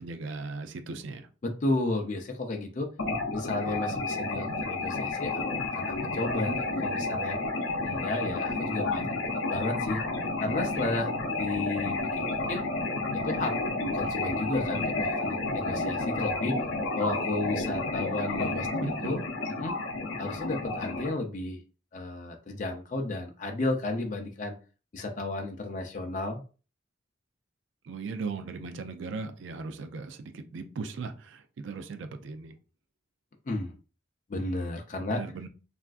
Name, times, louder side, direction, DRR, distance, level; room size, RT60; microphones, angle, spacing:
voice 1, 0.0-1.3 18.0-19.2 27.8-32.6 35.1-35.5, right 4 dB, 80° right, 0.4 m, -38 dB
voice 2, 1.4-2.9 3.3-5.4 5.7-7.4 7.8-9.2 9.5-10.0 10.4-12.7 13.1-13.6 13.9-16.6 17.0-18.7 19.0-19.2 19.6-19.8 20.2-21.6 21.9-24.6 24.9-26.4 33.5-33.7 34.3-35.2, left 2 dB, 40° left, 0.4 m, -33 dB
sound 1, 3.0-21.1, left 2 dB, 90° left, 0.6 m, -31 dB
3.3 x 2.4 x 2.3 m
head